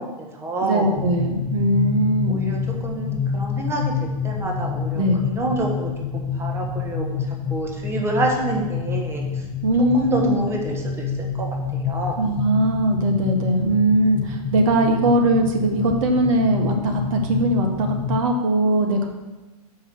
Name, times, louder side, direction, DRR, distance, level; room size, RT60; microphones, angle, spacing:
voice 1, 0.0-1.0 2.3-3.9 4.2-7.2 7.5-9.4 9.9-12.2, right 2 dB, 15° right, 0 dB, 1.2 m, -28 dB
voice 2, 0.6-2.5 4.9-5.2 9.6-10.4 12.2-19.1, right 1 dB, 55° right, 3 dB, 1.4 m, -20 dB
sound 1, 1.0-18.2, left 6 dB, 25° left, 0.6 m, -28 dB
6.9 x 5.6 x 6.1 m, 1.1 s
hypercardioid pair, 125°, 20 cm